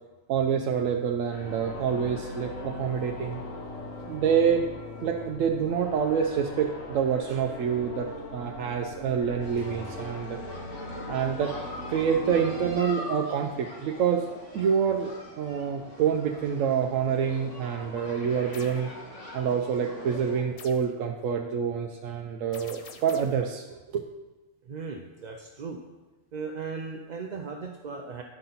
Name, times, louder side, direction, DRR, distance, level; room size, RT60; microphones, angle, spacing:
voice 1, 0.3-3.4 4.1-4.7 5.0-10.4 11.1-11.5 11.9-14.2 14.5-15.1 15.4-18.9 19.3-24.0, right 7 dB, 85° right, 2 dB, 1.0 m, -27 dB
sound 1, 1.3-12.7, left 2 dB, 90° left, 1.5 m, -40 dB
sound 2, 9.4-20.4, left 1 dB, 30° left, 1.8 m, -43 dB
sound 3, 18.5-18.8 20.6-20.9 22.5-23.5, left 5 dB, 60° left, 0.3 m, -47 dB
voice 2, 24.6-25.8 26.3-28.2, right 5 dB, 55° right, 2 dB, 0.5 m, -37 dB
10.0 x 5.7 x 3.9 m, 1.2 s
omnidirectional pair, 1.3 m